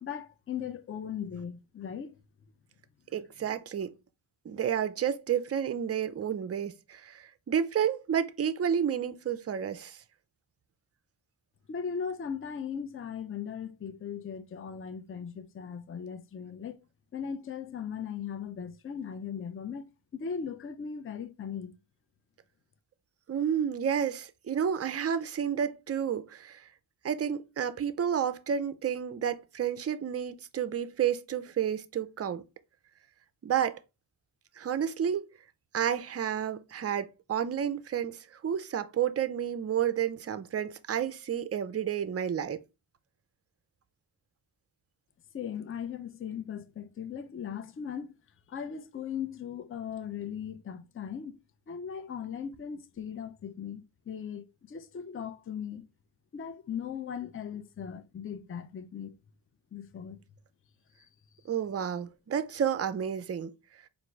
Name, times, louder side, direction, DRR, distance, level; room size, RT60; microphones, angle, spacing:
voice 1, 0.0-2.2 11.7-16.8 17.1-19.8 20.1-21.7 45.3-48.2 48.5-51.4 51.7-55.8 56.3-59.2 59.7-60.2 61.0-61.1, left 7 dB, 30° left, 0.4 m, -38 dB
voice 2, 3.1-3.9 4.5-10.0 23.3-26.7 27.0-32.4 33.4-33.8 34.6-35.3 35.7-42.6 61.5-63.5, right 8 dB, 35° right, 0.4 m, -30 dB
4.6 x 2.6 x 3.1 m
wide cardioid pair, 75°, 48 cm